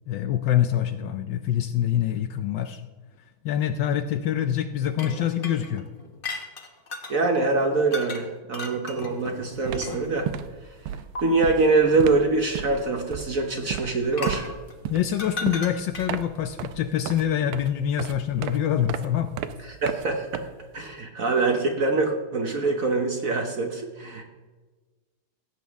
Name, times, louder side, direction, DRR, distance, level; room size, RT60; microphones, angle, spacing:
voice 1, 0.1-2.8 3.4-5.9 14.9-19.3, left 10 dB, 75° left, 9 dB, 1.1 m, -25 dB
sound 1, 4.9-7.2 7.9-8.2 8.5-10.3 11.1-11.2 14.1-16.3, left 3 dB, 35° left, 0.9 m, -36 dB
voice 2, 7.1-10.3 11.2-14.5 19.7-20.4 20.7-24.2, right 3 dB, 50° right, 3 dB, 1.1 m, -24 dB
sound 2, 9.1-9.3 9.5-21.0, right 10 dB, 90° right, 1.5 m, -35 dB
16.5 x 8.2 x 3.5 m, 1.3 s
omnidirectional pair, 2.3 m